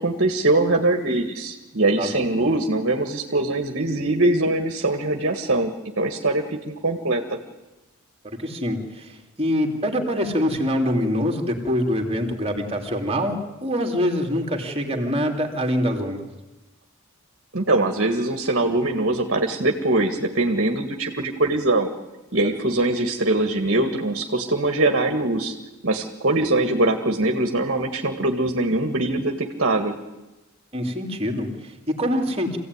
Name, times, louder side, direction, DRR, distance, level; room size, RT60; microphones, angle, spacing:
voice 1, 0.0-7.4 17.5-21.9 22.3-25.6 25.8-30.0, right 2 dB, 50° right, 5 dB, 1.8 m, -22 dB
voice 2, 8.2-16.2 30.7-32.6, equal, 25° right, 3 dB, 2.8 m, -25 dB
26.0 x 16.5 x 9.6 m, 1.1 s
head